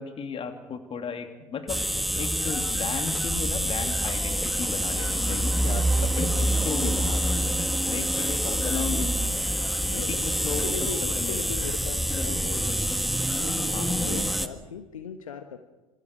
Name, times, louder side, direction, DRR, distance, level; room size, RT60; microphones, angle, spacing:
voice 1, 0.0-7.5 7.8-9.2 10.0-10.9 11.2-11.4 13.7-14.0, left 6 dB, 30° left, 5 dB, 3.2 m, -34 dB
sound 1, 1.7-14.5, equal, ahead, 1.7 m, -26 dB
voice 2, 9.9-10.3 10.6-12.8 13.4-15.6, left 7 dB, 75° left, 9 dB, 1.4 m, -38 dB
29.0 x 26.5 x 5.0 m, 1.1 s
figure-of-eight pair, 70°, 18 cm